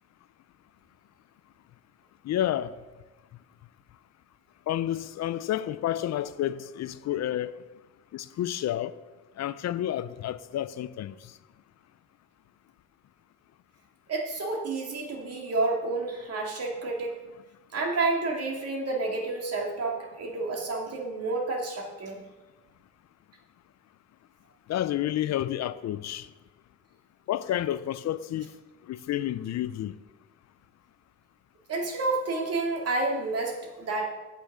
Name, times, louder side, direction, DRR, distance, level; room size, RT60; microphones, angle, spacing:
voice 1, 2.2-2.7 4.7-7.6 8.1-8.9 9.4-11.2 24.7-26.3 27.3-28.5 28.9-29.9, left 12 dB, 60° left, 0.5 m, -30 dB
voice 2, 14.1-17.2 17.7-22.2 31.7-34.0, right 3 dB, 55° right, 2.4 m, -30 dB
8.8 x 8.3 x 4.9 m
cardioid pair, 90°, 30 cm